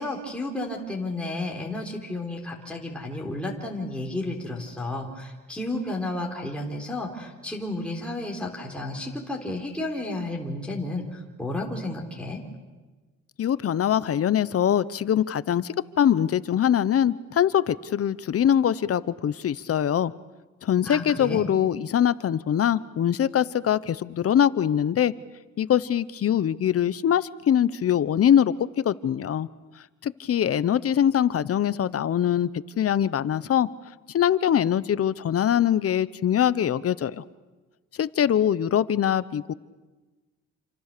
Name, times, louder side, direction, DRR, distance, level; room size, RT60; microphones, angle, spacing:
voice 1, 0.0-11.0 11.4-12.4 20.9-21.5, left 2 dB, 5° left, -1 dB, 4.0 m, -32 dB
voice 2, 13.4-20.1 20.6-25.1 25.6-29.5 30.0-32.5 32.8-33.7 34.1-37.2 38.0-39.5, left 9 dB, 50° left, 17 dB, 0.9 m, -23 dB
28.0 x 26.0 x 6.8 m, 1.3 s
cardioid pair, 90°, 30 cm